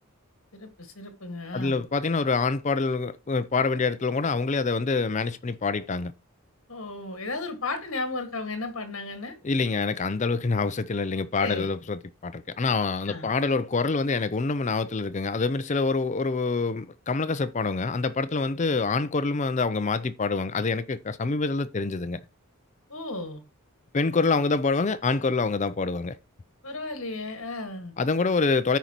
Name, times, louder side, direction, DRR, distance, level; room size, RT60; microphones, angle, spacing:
voice 1, 0.5-1.8 6.7-9.4 11.4-11.7 13.1-13.3 22.9-23.4 26.6-28.0, left 3 dB, 65° left, 1.8 m, -34 dB
voice 2, 1.5-6.1 9.4-22.2 23.9-26.2 28.0-28.8, left 4 dB, 35° left, 0.4 m, -26 dB
13.5 x 5.2 x 2.9 m
head